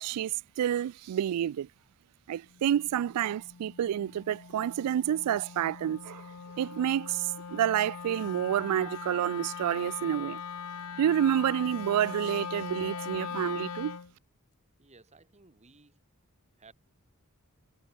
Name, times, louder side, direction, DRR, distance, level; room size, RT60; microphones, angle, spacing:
voice 1, 0.0-1.7 2.3-6.2 6.6-10.4 11.0-14.0, right 10 dB, 90° right, 0.3 m, -29 dB
Wind instrument woodwind instrument, 2.5-14.1, left 6 dB, 80° left, 0.8 m, -41 dB
voice 2, 14.8-16.0 16.6-16.7, right 3 dB, 30° right, 1.6 m, -57 dB
head